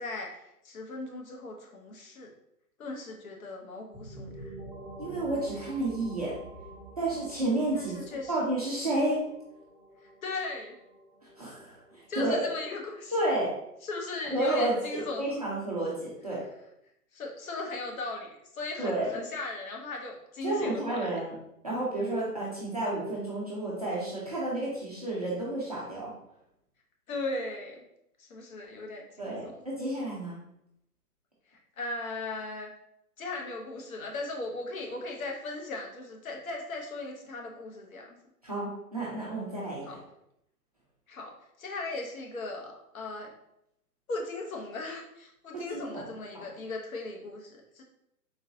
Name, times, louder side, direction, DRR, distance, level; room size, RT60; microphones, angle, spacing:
voice 1, 0.0-2.3 2.8-4.5 7.7-8.4 10.0-10.8 12.1-13.2 13.8-15.5 17.1-21.2 27.1-27.8 28.2-29.6 31.5-32.7 33.2-38.2 39.8-40.0 41.1-43.3 44.1-47.8, left 2 dB, 55° left, 0 dB, 1.0 m, -38 dB
sound 1, 3.9-13.5, right 1 dB, 5° left, 1.2 m, -48 dB
voice 2, 5.0-6.3 7.0-7.9 8.3-9.2 11.4-12.5 13.1-13.5 14.3-16.4 18.8-19.1 20.4-21.3 21.6-26.1 29.2-30.3 38.4-39.8 45.7-46.0 46.3-46.4, right 1 dB, 25° right, -7 dB, 0.4 m, -31 dB
3.7 x 2.6 x 2.6 m, 0.80 s
hypercardioid pair, 140°, 48 cm